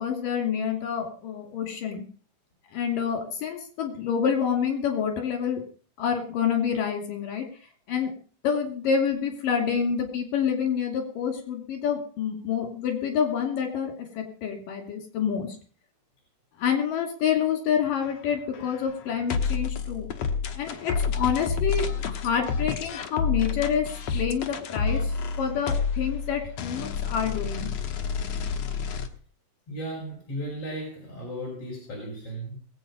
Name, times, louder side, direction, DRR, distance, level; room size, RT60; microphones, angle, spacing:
voice 1, 0.0-2.0 2.7-5.6 6.0-7.5 7.9-8.1 8.4-15.6 16.6-20.1 20.5-23.9 24.1-27.7, left 7 dB, 85° left, 4 dB, 4.5 m, -27 dB
sound 1, 17.8-29.1, left 5 dB, 60° left, 2.2 m, -29 dB
voice 2, 29.7-32.5, right 1 dB, 45° left, -3 dB, 5.9 m, -35 dB
21.0 x 8.6 x 5.3 m, 0.41 s
omnidirectional pair, 3.8 m